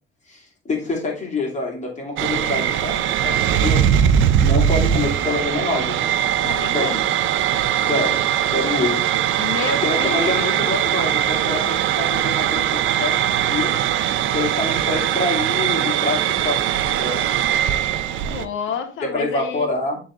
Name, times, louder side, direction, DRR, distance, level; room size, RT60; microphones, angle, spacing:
voice 1, 0.3-3.9 4.4-6.1 6.4-6.9 7.9-8.2 8.5-9.0 9.8-13.8 14.3-17.2 19.0-20.0, left 2 dB, 35° left, 2.7 m, -26 dB
sound 1, 2.2-18.5, right 10 dB, 80° right, 0.5 m, -20 dB
voice 2, 6.4-7.1 9.4-10.6 11.0-11.1 18.2-19.7, left 6 dB, 80° left, 1.2 m, -29 dB
7.5 x 3.8 x 3.7 m
cardioid pair, 90°, 20 cm